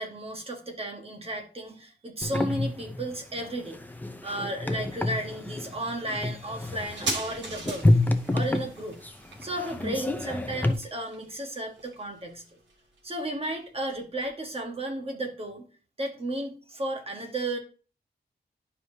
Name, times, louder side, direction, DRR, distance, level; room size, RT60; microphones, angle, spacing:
voice 1, 0.0-3.8 4.2-8.0 8.3-9.0 9.4-12.4 13.0-15.7 16.0-17.6, right 1 dB, 30° right, 3 dB, 1.5 m, -34 dB
sound 1, 2.2-10.7, left 2 dB, 10° left, 0.5 m, -28 dB
sound 2, 6.9-14.0 14.2-14.3, right 3 dB, 90° right, 2.0 m, -40 dB
11.0 x 4.9 x 2.8 m, 0.36 s
wide cardioid pair, 180°, 18 cm